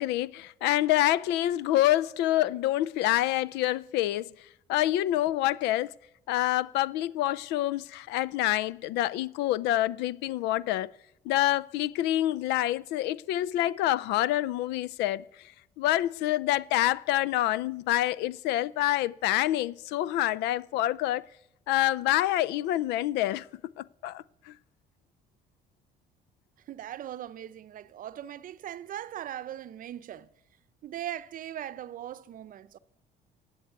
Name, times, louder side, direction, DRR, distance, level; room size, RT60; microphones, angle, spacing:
voice 1, 0.0-4.3 4.7-5.9 6.3-10.9 11.2-15.5 15.8-21.3 21.7-23.5 23.8-24.5, left 14 dB, 90° left, 0.4 m, -27 dB
voice 2, 26.7-30.3 30.8-32.8, right 11 dB, 55° right, 0.7 m, -39 dB
14.0 x 7.9 x 9.3 m
cardioid pair, 110°, 17 cm